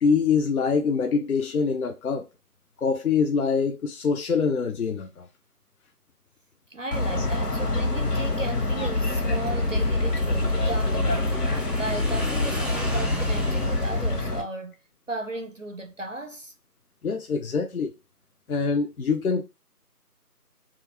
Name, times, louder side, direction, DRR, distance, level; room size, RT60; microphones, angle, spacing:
voice 1, 0.0-2.3 2.8-5.3 17.0-17.9 18.5-19.4, left 5 dB, 65° left, 0.5 m, -24 dB
voice 2, 6.7-14.7 15.1-16.5, right 2 dB, 55° right, 0.5 m, -35 dB
sound 1, 6.9-14.4, left 2 dB, 90° left, 1.0 m, -25 dB
Motorcycle / Engine, 7.3-14.3, equal, ahead, 0.4 m, -38 dB
2.7 x 2.4 x 2.8 m
figure-of-eight pair, 170°, 47 cm